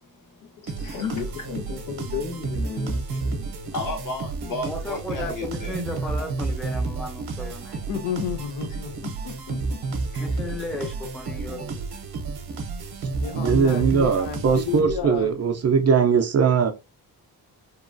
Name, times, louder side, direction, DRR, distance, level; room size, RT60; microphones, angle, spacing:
voice 1, 0.0-1.1 3.7-5.8 10.1-10.2, left 2 dB, 55° left, 1.2 m, -34 dB
voice 2, 0.6-3.6, left 7 dB, 70° left, 1.3 m, -34 dB
sound 1, 0.7-15.2, right 3 dB, 70° right, 0.7 m, -31 dB
voice 3, 4.4-7.9 10.2-12.0, left 2 dB, ahead, 0.6 m, -35 dB
voice 4, 7.9-9.8 13.2-15.3, left 8 dB, 90° left, 0.6 m, -31 dB
voice 5, 13.3-16.7, right 6 dB, 40° right, 0.4 m, -20 dB
2.9 x 2.3 x 2.5 m
cardioid pair, 105°, 39 cm